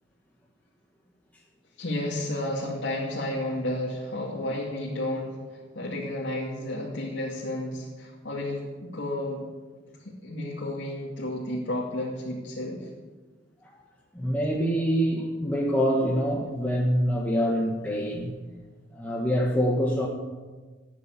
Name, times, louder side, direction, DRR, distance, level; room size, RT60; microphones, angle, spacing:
voice 1, 1.8-9.5 10.0-12.9, left 1 dB, 65° left, -4 dB, 2.5 m, -32 dB
voice 2, 14.1-18.3 18.9-20.1, equal, 10° left, -3 dB, 1.7 m, -25 dB
17.5 x 9.5 x 8.5 m, 1.3 s
head